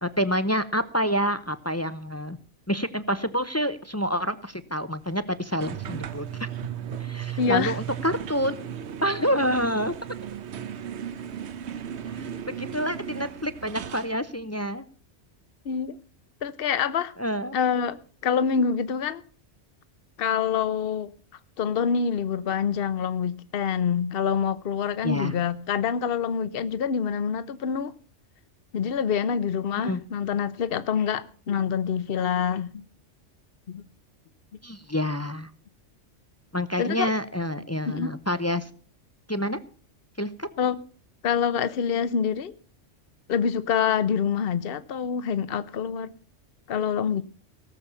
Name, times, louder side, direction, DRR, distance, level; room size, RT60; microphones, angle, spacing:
voice 1, 0.0-2.4 2.7-6.5 7.0-8.5 9.0-9.9 12.1-14.8 17.2-17.6 25.0-25.3 29.8-30.0 34.6-35.5 36.5-38.7 39.3-39.6 40.2-40.5, equal, 15° left, 0.6 m, -28 dB
sound 1, 5.6-14.2, right 8 dB, 70° right, 1.1 m, -36 dB
voice 2, 7.4-7.8 15.7-16.0 16.4-17.1 17.5-18.0 18.2-19.2 20.2-21.1 21.6-27.9 28.7-32.8 33.7-33.8 36.8-37.1 37.9-38.1 40.6-40.8 41.2-42.5 43.3-46.1 46.7-47.2, left 7 dB, 55° left, 1.0 m, -26 dB
18.0 x 7.1 x 7.1 m
omnidirectional pair, 1.2 m